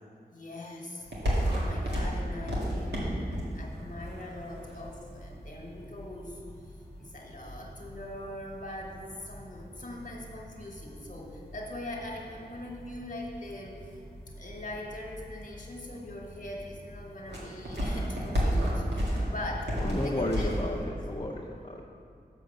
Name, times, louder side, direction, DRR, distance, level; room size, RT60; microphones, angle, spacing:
voice 1, 0.3-6.4 6.7-13.8 14.3-19.7 20.0-20.5, left 1 dB, 50° left, -1 dB, 1.4 m, -42 dB
sound 1, 1.0-20.8, equal, 80° right, 1.8 m, -35 dB
voice 2, 19.8-21.8, left 1 dB, 35° left, -5 dB, 0.7 m, -33 dB
6.8 x 5.2 x 6.6 m, 2.3 s
wide cardioid pair, 65°, 17 cm